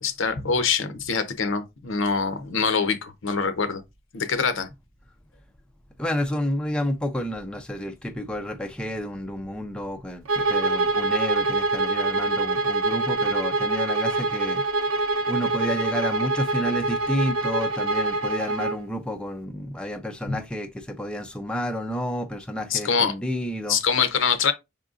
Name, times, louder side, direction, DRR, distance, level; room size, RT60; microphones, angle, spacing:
voice 1, 0.0-3.8 4.1-4.7 20.3-20.4 22.7-23.1 23.7-24.5, left 5 dB, 65° left, 0.7 m, -24 dB
voice 2, 6.0-14.6 15.3-23.8, equal, 5° left, 0.4 m, -30 dB
Bowed string instrument, 10.3-18.8, right 2 dB, 80° right, 0.7 m, -25 dB
5.6 x 3.8 x 2.4 m
head